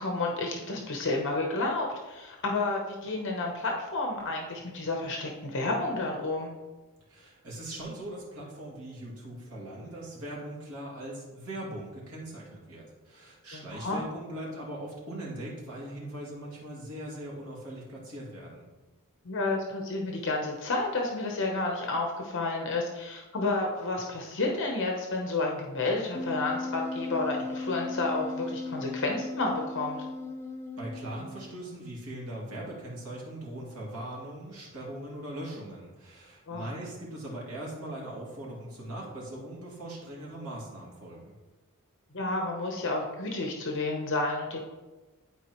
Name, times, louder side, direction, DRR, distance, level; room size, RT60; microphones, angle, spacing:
voice 1, 0.0-6.5 13.5-14.0 19.2-30.0 36.5-36.7 42.1-44.6, left 2 dB, 55° left, 1 dB, 0.9 m, -31 dB
voice 2, 7.1-18.6 30.8-41.3, right 1 dB, 75° right, -5 dB, 2.5 m, -40 dB
Wind instrument woodwind instrument, 26.1-31.6, left 3 dB, 10° left, 0.6 m, -37 dB
11.5 x 4.4 x 3.1 m, 1.2 s
head